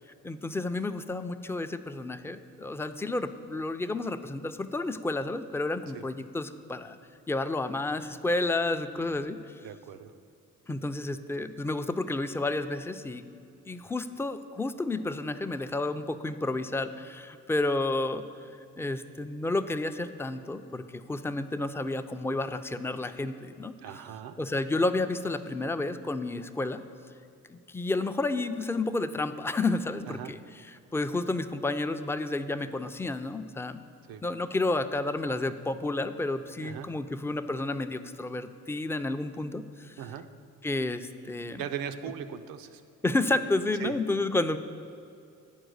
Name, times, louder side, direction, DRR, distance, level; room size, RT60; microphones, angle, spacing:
voice 1, 0.2-7.0 7.3-9.4 10.7-13.2 13.7-18.2 18.8-23.8 24.4-26.8 27.5-30.4 30.9-33.8 34.2-40.0 40.6-41.6 43.0-44.6, left 2 dB, 10° left, 9 dB, 0.3 m, -31 dB
voice 2, 9.6-10.1 23.8-24.4 30.1-30.3 34.1-34.2 36.6-36.9 40.0-40.3 41.6-42.8 43.8-44.0, right 9 dB, 80° right, 9 dB, 0.6 m, -38 dB
9.0 x 4.6 x 6.4 m, 2.4 s
supercardioid pair, 60°, 34 cm